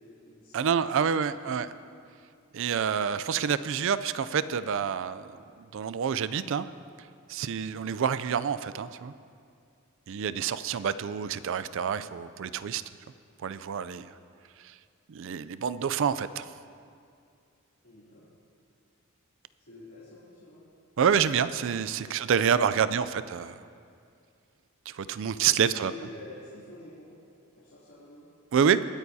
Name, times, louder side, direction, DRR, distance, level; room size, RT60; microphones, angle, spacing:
voice 1, 0.0-1.7 17.8-18.3 19.7-20.6 21.9-22.9 25.4-27.1 27.5-28.2, left 1 dB, 70° left, -12 dB, 2.9 m, -48 dB
voice 2, 0.5-1.7 2.5-5.3 5.7-6.7 7.3-9.1 10.1-12.8 13.4-14.1 15.1-16.5 21.0-23.6 24.9-25.9 28.5-28.8, right 7 dB, 65° right, 14 dB, 0.4 m, -27 dB
21.0 x 9.3 x 2.8 m, 2.4 s
head